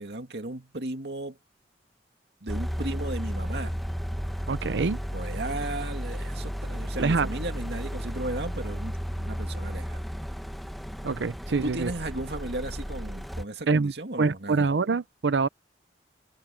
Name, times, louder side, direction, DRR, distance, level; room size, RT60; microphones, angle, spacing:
voice 1, 0.0-1.4 2.4-3.8 4.6-4.9 5.1-10.0 11.6-14.7, right 2 dB, 70° right, 2.4 m, -35 dB
sound 1, 2.5-13.5, equal, ahead, 1.0 m, -33 dB
voice 2, 4.5-5.0 7.0-7.3 11.0-11.9 13.7-13.9 14.2-15.5, right 4 dB, 85° right, 0.6 m, -25 dB
open air
head